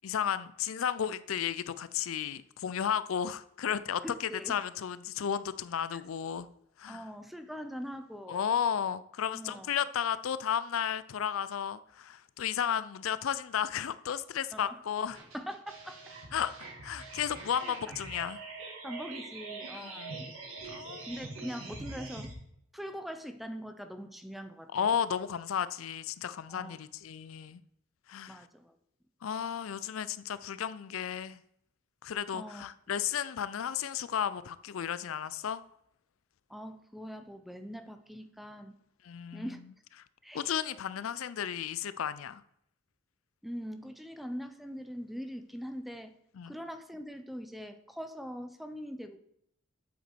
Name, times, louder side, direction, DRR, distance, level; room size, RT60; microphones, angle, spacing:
voice 1, 0.0-6.5 6.8-7.1 8.3-15.2 16.3-16.5 16.8-18.4 19.7-20.1 20.6-21.1 24.7-27.6 28.1-28.4 29.2-31.4 32.0-35.6 39.0-39.5 40.3-42.4 46.4-46.5, left 8 dB, 80° left, 0.4 m, -33 dB
voice 2, 4.0-4.6 5.9-6.0 6.9-8.5 9.3-9.7 14.5-14.8 15.3-16.0 17.6-17.9 18.8-20.3 21.1-22.3 22.7-24.9 26.5-26.8 28.3-28.8 32.3-32.7 36.5-38.8 39.3-39.6 40.2-40.5 43.4-46.1 46.5-49.2, equal, ahead, 0.6 m, -42 dB
sound 1, 15.1-22.3, right 3 dB, 85° right, 2.6 m, -44 dB
8.0 x 7.9 x 4.5 m
head